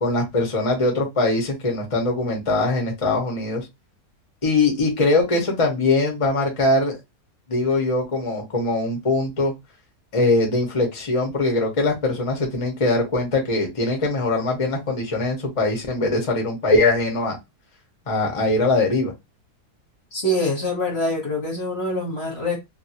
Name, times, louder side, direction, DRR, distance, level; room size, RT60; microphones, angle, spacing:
voice 1, 0.0-3.7 4.4-6.9 7.5-9.5 10.1-17.4 18.1-19.1, left 2 dB, 25° left, 0.9 m, -21 dB
voice 2, 20.1-22.6, left 1 dB, 45° left, 1.2 m, -24 dB
2.7 x 2.7 x 2.8 m
omnidirectional pair, 1.7 m